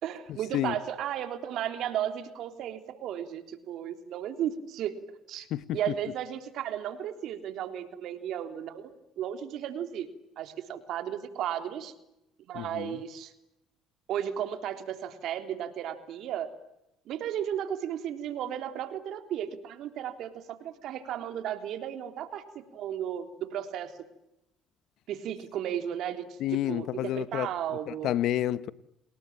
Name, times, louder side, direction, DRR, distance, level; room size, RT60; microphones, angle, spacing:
voice 1, 0.0-5.5 5.7-10.1 10.3-11.9 12.5-13.3 14.1-16.5 17.0-22.4 22.7-23.9 25.1-28.1, right 10 dB, 70° right, 3.5 m, -34 dB
voice 2, 12.5-13.0 26.4-27.5 27.9-28.7, left 13 dB, 70° left, 1.1 m, -29 dB
29.5 x 20.5 x 9.0 m
supercardioid pair, 80°, 0 cm